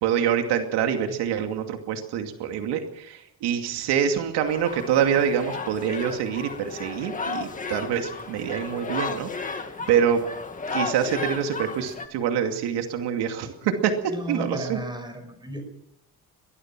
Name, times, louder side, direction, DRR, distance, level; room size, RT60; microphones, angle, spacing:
voice 1, 0.0-10.2 10.7-14.8, right 8 dB, 90° right, 5 dB, 2.6 m, -26 dB
sound 1, 4.5-12.1, left 4 dB, 20° left, 1.8 m, -34 dB
voice 2, 14.1-15.6, right 1 dB, 10° right, 7 dB, 5.4 m, -33 dB
22.5 x 20.0 x 6.1 m, 0.76 s
cardioid pair, 150°, 39 cm